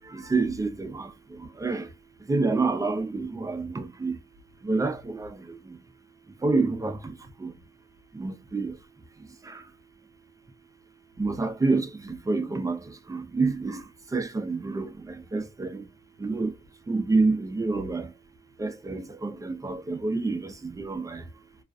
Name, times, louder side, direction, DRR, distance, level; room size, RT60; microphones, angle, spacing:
voice 1, 0.1-1.1 1.6-1.9 2.3-4.1 4.6-5.6 6.4-7.1 7.4-7.5 8.2-8.7 9.5-9.6 11.2-12.8 13.1-13.8 14.1-14.9 15.3-15.8 16.2-16.5 16.9-18.1 18.6-21.2, right 3 dB, 15° right, 0.5 m, -27 dB
2.4 x 2.2 x 2.3 m
cardioid pair, 90°, 20 cm